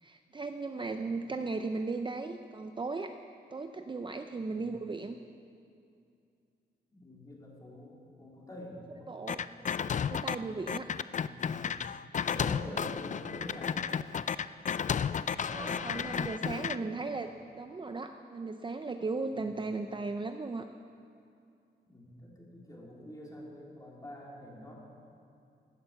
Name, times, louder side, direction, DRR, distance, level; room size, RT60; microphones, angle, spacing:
voice 1, 0.0-3.1 3.5-5.2 9.1-9.5 9.8-10.9 15.5-20.7, right 3 dB, 25° right, 6 dB, 0.6 m, -37 dB
voice 2, 6.9-9.1 9.4-9.6 11.1-11.9 12.2-13.9 14.9-17.3 19.3-19.4 21.9-24.8, equal, 20° left, -4 dB, 3.6 m, -47 dB
sound 1, 9.3-10.4 10.7-16.8, left 7 dB, 45° left, 0.4 m, -32 dB
16.5 x 12.5 x 7.0 m, 2.5 s
wide cardioid pair, 135°, 18 cm